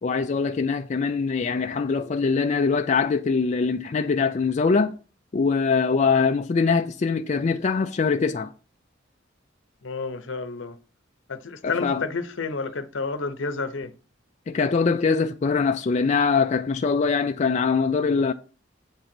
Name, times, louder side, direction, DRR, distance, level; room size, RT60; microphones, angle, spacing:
voice 1, 0.0-4.9 5.3-8.5 11.6-12.0 14.5-18.3, left 5 dB, 35° left, 0.4 m, -23 dB
voice 2, 9.8-10.8 11.3-13.9, left 4 dB, 70° left, 0.8 m, -30 dB
8.1 x 3.9 x 6.0 m
head